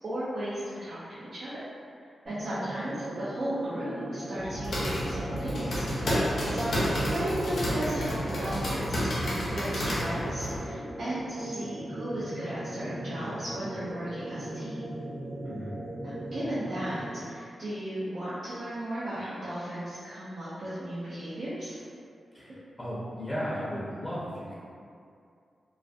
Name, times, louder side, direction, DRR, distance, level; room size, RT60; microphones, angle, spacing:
voice 1, 0.0-1.5 2.2-5.9 6.5-6.7 7.0-14.8 16.0-21.8, right 1 dB, 60° right, -11 dB, 0.5 m, -35 dB
sound 1, 2.3-17.4, right 1 dB, 25° right, 0.7 m, -38 dB
sound 2, 4.4-10.6, equal, 80° left, 0.6 m, -30 dB
voice 2, 15.4-15.8 22.3-24.5, equal, 10° left, -9 dB, 0.6 m, -35 dB
2.3 x 2.1 x 2.5 m, 2.4 s
cardioid pair, 60°, 0 cm